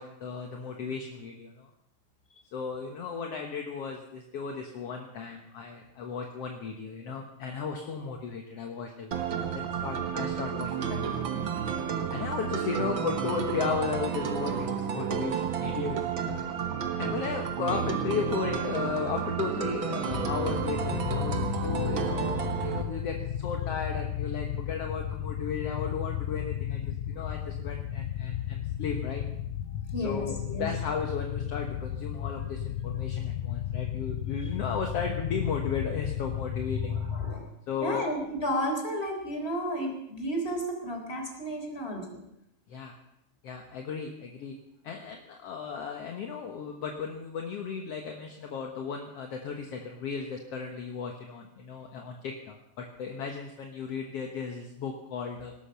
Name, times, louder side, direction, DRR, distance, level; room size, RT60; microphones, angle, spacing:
voice 1, 0.0-1.7 2.5-11.1 12.1-16.5 17.0-29.2 30.0-37.0 37.7-38.1 42.7-43.0 43.4-44.6 44.8-55.5, left 5 dB, 60° left, 2 dB, 2.2 m, -35 dB
sound 1, 9.1-22.8, right 7 dB, 50° right, 1.7 m, -31 dB
sound 2, 20.1-37.4, left 10 dB, 85° left, 2.2 m, -33 dB
voice 2, 29.9-30.7 37.1-37.5 37.8-42.2, equal, 20° left, 2 dB, 3.8 m, -32 dB
19.5 x 12.5 x 5.8 m, 0.79 s
omnidirectional pair, 3.4 m